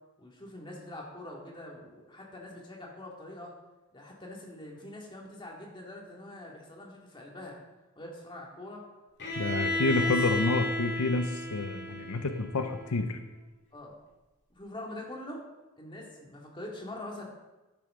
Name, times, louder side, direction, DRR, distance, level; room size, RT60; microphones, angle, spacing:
voice 1, 0.2-3.5 3.9-7.6 8.0-8.9 9.5-10.1 13.7-14.0 14.5-15.4 15.8-17.2, left 1 dB, 25° left, -2 dB, 2.3 m, -44 dB
Bowed string instrument, 9.2-13.1, left 1 dB, 55° left, 2.1 m, -33 dB
voice 2, 9.4-13.2, left 3 dB, 85° left, 7 dB, 0.8 m, -29 dB
12.0 x 10.0 x 3.8 m, 1.1 s
head